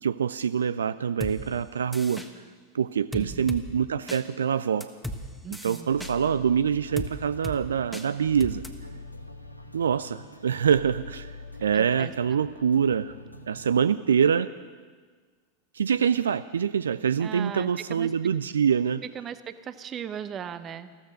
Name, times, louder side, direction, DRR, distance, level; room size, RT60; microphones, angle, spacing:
voice 1, 0.0-2.2 2.7-4.9 5.6-8.6 9.7-13.1 13.5-14.5 15.7-19.0, right 7 dB, 70° right, 15 dB, 0.3 m, -25 dB
sound 1, 1.2-1.3 1.9-2.3 3.1-3.6 4.1-4.2 4.8-5.2 5.5-6.1 7.0-7.1 7.4-7.6 7.9-8.1 8.4-8.7, equal, ahead, 1.3 m, -35 dB
voice 2, 3.1-3.5 5.4-5.9 11.7-12.4 17.2-18.1 19.0-20.9, right 8 dB, 30° right, 13 dB, 0.9 m, -38 dB
sound 2, 5.9-13.8, left 1 dB, 90° left, 1.1 m, -44 dB
14.5 x 14.0 x 6.5 m, 1.5 s
figure-of-eight pair, 85°, 0 cm